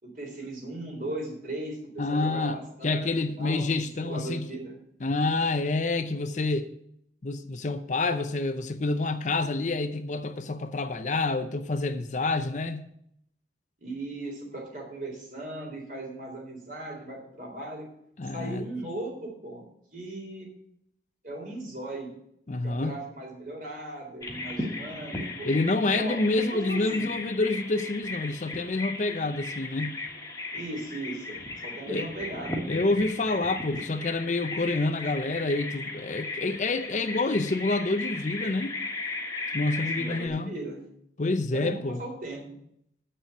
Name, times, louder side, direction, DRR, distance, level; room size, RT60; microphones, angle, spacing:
voice 1, 0.0-3.1 3.4-4.8 13.8-17.8 18.3-19.6 19.9-20.5 21.2-22.1 22.6-25.5 25.9-27.1 30.5-32.6 39.8-40.8 41.5-42.4, right 2 dB, 50° right, 3.8 m, -38 dB
voice 2, 2.0-4.6 5.0-6.7 7.2-12.9 18.2-18.7 22.5-22.9 25.4-30.0 31.9-32.1 32.7-38.7 39.5-40.5 41.2-42.0, left 2 dB, 45° left, 0.6 m, -28 dB
Bird vocalization bird call bird song, 24.2-40.3, left 3 dB, 20° left, 1.5 m, -36 dB
7.7 x 6.5 x 8.1 m
head